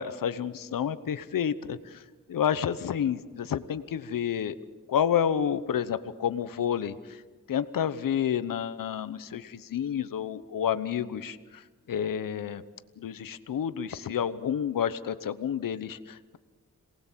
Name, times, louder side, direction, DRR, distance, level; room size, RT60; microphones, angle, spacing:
voice 1, 0.0-2.0 2.3-4.6 4.9-7.2 7.5-11.6 11.9-12.6 13.0-16.4, left 8 dB, 85° left, 13 dB, 1.0 m, -30 dB
27.0 x 19.0 x 7.4 m, 1.4 s
wide cardioid pair, 110°, 32 cm